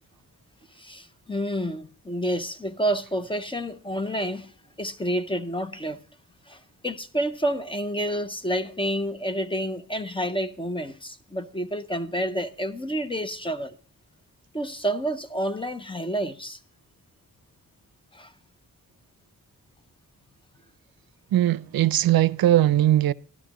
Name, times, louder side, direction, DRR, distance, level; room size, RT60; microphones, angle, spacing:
voice 1, 0.8-4.5 4.8-6.0 6.5-13.7 14.5-16.6 18.1-18.3, equal, 15° left, 0.6 m, -29 dB
voice 2, 21.3-23.1, right 13 dB, 80° right, 0.5 m, -20 dB
13.0 x 12.5 x 2.9 m
wide cardioid pair, 160°, 35 cm